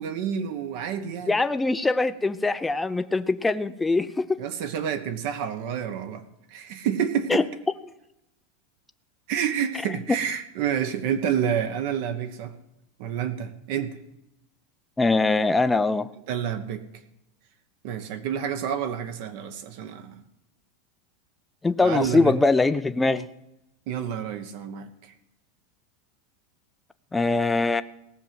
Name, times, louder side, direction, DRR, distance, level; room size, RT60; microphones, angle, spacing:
voice 1, 0.0-1.4 4.4-6.2 6.5-7.4 9.3-12.5 13.0-13.9 16.3-16.8 17.8-20.2 21.8-22.3 23.9-24.9, right 8 dB, 50° right, 10 dB, 1.1 m, -29 dB
voice 2, 1.3-4.4 7.3-7.4 15.0-16.1 21.6-23.3 27.1-27.8, left 3 dB, 5° left, 12 dB, 0.5 m, -22 dB
18.0 x 6.5 x 7.6 m, 0.86 s
supercardioid pair, 165°, 0 cm